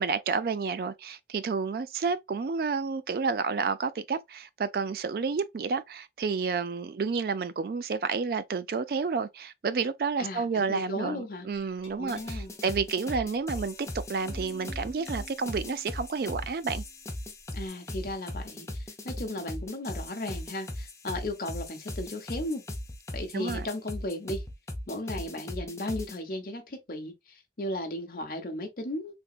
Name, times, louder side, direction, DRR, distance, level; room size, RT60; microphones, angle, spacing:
voice 1, 0.0-16.8 23.3-23.7, right 5 dB, 55° right, 0.3 m, -30 dB
voice 2, 10.2-11.5 12.0-12.5 17.5-22.6 23.1-24.4 24.9-29.2, left 1 dB, 50° left, 0.8 m, -35 dB
Glass, 11.5-17.7, equal, 35° left, 1.1 m, -53 dB
sound 1, 12.1-26.2, left 1 dB, 15° left, 0.5 m, -38 dB
3.6 x 2.9 x 2.3 m
head